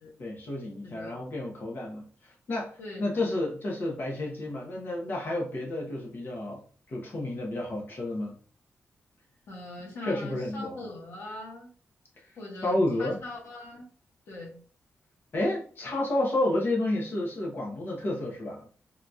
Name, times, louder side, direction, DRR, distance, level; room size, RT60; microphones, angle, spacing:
voice 1, 0.2-6.6 6.9-8.4 10.0-10.8 12.6-13.2 15.3-18.7, left 1 dB, 55° left, -1 dB, 0.9 m, -30 dB
voice 2, 0.8-1.2 2.8-3.0 9.5-11.7 12.4-13.9 14.3-14.6, left 2 dB, 80° left, -2 dB, 1.4 m, -41 dB
3.8 x 2.8 x 2.4 m, 0.43 s
wide cardioid pair, 155°, 4 cm